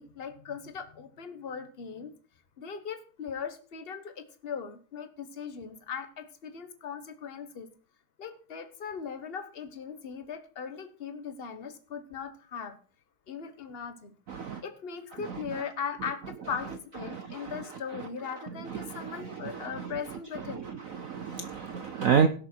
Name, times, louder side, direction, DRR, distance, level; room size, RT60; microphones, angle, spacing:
voice 1, 0.0-2.1 2.6-7.7 8.2-12.8 13.3-14.1 14.6-20.7, left 6 dB, 35° left, 9 dB, 1.0 m, -39 dB
voice 2, 14.3-14.6 17.1-17.5 18.7-19.0 19.5-19.6 21.0-22.3, right 7 dB, 75° right, 8 dB, 0.7 m, -28 dB
17.0 x 6.7 x 4.5 m, 0.41 s
omnidirectional pair, 2.4 m